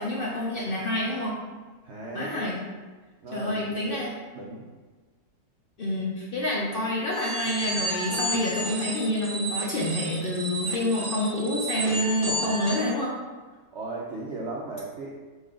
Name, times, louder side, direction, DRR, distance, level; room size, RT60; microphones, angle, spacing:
voice 1, 0.0-1.3 2.1-2.6 3.3-4.1 5.8-13.1, left 1 dB, 65° left, -4 dB, 0.5 m, -28 dB
voice 2, 1.8-2.5 3.2-4.0 4.3-4.7 13.7-15.2, right 2 dB, 70° right, -3 dB, 0.6 m, -37 dB
sound 1, 7.1-12.9, right 1 dB, 25° right, 0.7 m, -32 dB
4.0 x 2.7 x 4.8 m, 1.4 s
omnidirectional pair, 1.7 m